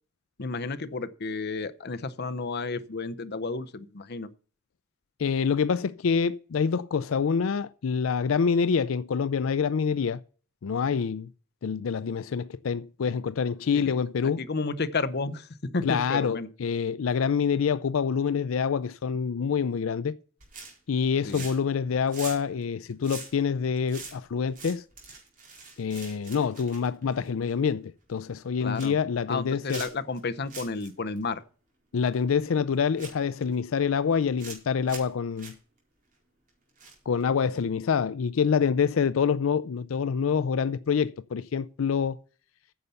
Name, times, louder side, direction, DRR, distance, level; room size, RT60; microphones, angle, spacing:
voice 1, 0.4-4.3 13.7-13.8 14.4-15.5 15.7-16.5 21.2-21.4 28.6-29.0 29.3-31.4, left 4 dB, 55° left, 0.7 m, -32 dB
voice 2, 5.2-10.2 10.6-11.3 11.6-14.4 15.8-20.1 20.9-24.8 25.8-29.8 31.9-35.5 37.1-42.2, left 6 dB, 85° left, 0.4 m, -26 dB
sound 1, 20.4-20.9 21.2-21.7 22.0-27.6 28.0-28.2 28.5-29.0 29.7-30.2 30.5-30.9 31.2-31.3 32.4-32.5 33.0-33.5 34.1-34.6 34.9-35.1 35.4-35.5 36.8-37.2 37.6-37.7, right 4 dB, 45° right, 4.5 m, -43 dB
9.6 x 6.9 x 6.8 m
head